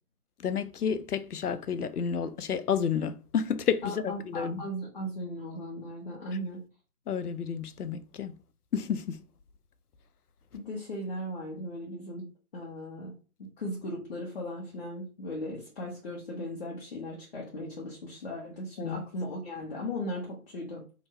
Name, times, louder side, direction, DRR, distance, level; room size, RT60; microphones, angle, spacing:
voice 1, 0.4-4.6 7.1-8.4 8.7-9.2 18.8-19.0, left 7 dB, 85° left, 0.6 m, -30 dB
voice 2, 3.8-6.6 10.5-12.3 12.5-13.1 13.4-20.8, left 1 dB, 40° left, 1.0 m, -37 dB
2.9 x 2.5 x 4.3 m
figure-of-eight pair, 155°, 45 cm